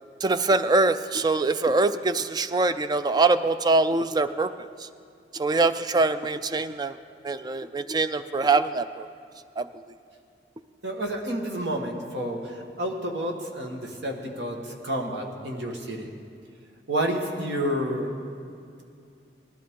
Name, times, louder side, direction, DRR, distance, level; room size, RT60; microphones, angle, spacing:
voice 1, 0.2-4.5 5.3-7.0 7.2-9.1 9.6-9.7, right 3 dB, 25° right, 12 dB, 0.4 m, -23 dB
voice 2, 10.8-16.1 16.9-18.1, right 1 dB, 85° right, 2 dB, 1.6 m, -30 dB
19.0 x 13.0 x 3.7 m, 2.4 s
head